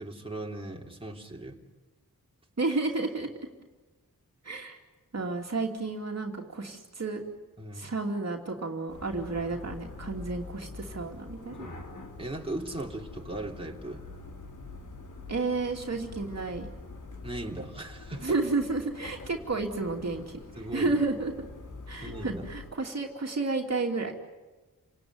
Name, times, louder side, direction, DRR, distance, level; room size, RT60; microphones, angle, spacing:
voice 1, 0.0-1.6 7.6-7.9 11.6-11.8 12.2-14.1 17.2-18.4 20.6-20.9 22.0-22.5, right 1 dB, 15° right, -1 dB, 3.2 m, -38 dB
voice 2, 2.6-3.3 4.4-4.8 5.1-7.2 7.7-11.7 15.3-16.7 18.2-20.4 20.7-21.5 21.9-24.3, right 3 dB, 45° right, 1 dB, 2.7 m, -31 dB
sound 1, 8.9-22.7, left 3 dB, 60° left, 3.1 m, -45 dB
30.0 x 18.5 x 9.7 m, 1.2 s
wide cardioid pair, 95°, 35 cm